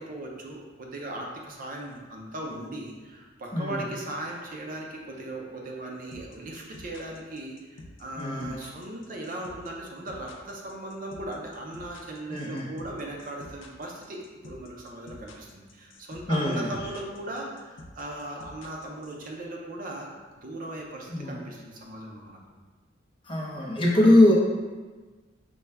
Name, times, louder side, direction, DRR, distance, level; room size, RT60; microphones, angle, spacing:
voice 1, 0.0-20.1 20.4-22.4, right 1 dB, 45° right, -1 dB, 0.6 m, -38 dB
sound 1, 6.1-19.3, left 2 dB, 70° left, 0.5 m, -47 dB
voice 2, 8.2-8.5 12.3-12.7 16.3-16.7 21.1-21.3 23.2-24.3, left 1 dB, 25° left, -3 dB, 0.6 m, -22 dB
5.4 x 2.3 x 3.3 m, 1.3 s
head